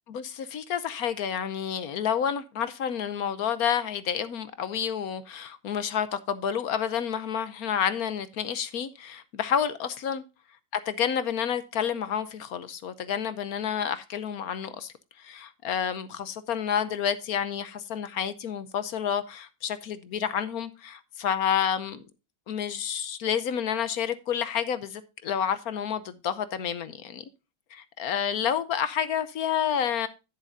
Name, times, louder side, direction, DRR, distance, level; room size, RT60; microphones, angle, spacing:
voice 1, 0.1-10.2 10.9-22.0 22.5-27.2 27.7-30.1, left 8 dB, 65° left, 1.1 m, -29 dB
10.5 x 10.0 x 2.6 m
omnidirectional pair, 1.9 m